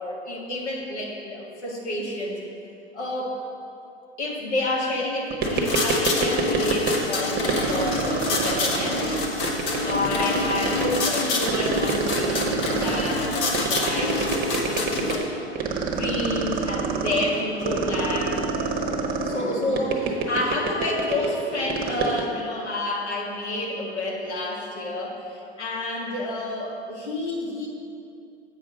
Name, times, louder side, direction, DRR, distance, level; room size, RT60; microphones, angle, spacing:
voice 1, 0.0-2.4 2.9-3.4 4.2-9.1 9.4-9.5 9.8-15.6 15.9-18.4 19.2-27.7, left 1 dB, 85° left, -3 dB, 1.9 m, -29 dB
sound 1, 5.3-7.1 7.4-22.3, right 6 dB, 25° right, 1.1 m, -27 dB
sound 2, 5.4-15.2, left 2 dB, 55° left, 1.4 m, -27 dB
sound 3, 13.0-22.6, right 1 dB, 5° right, 0.6 m, -39 dB
8.2 x 4.9 x 6.2 m, 2.6 s
hypercardioid pair, 95°, 34 cm